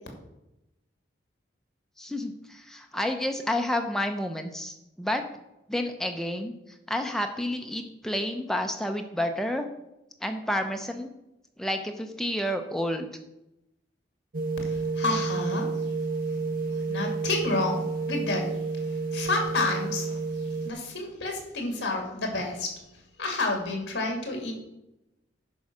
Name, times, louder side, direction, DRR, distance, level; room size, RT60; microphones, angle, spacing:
voice 1, 2.0-5.2 5.7-6.5 6.9-9.7 10.2-11.1 11.6-13.1, left 1 dB, ahead, 4 dB, 0.6 m, -30 dB
sound 1, 14.3-20.7, right 4 dB, 45° right, 0.7 m, -30 dB
voice 2, 14.6-15.9 16.7-22.7 23.2-24.5, left 2 dB, 55° left, 2 dB, 2.4 m, -30 dB
10.5 x 4.8 x 6.1 m, 0.91 s
head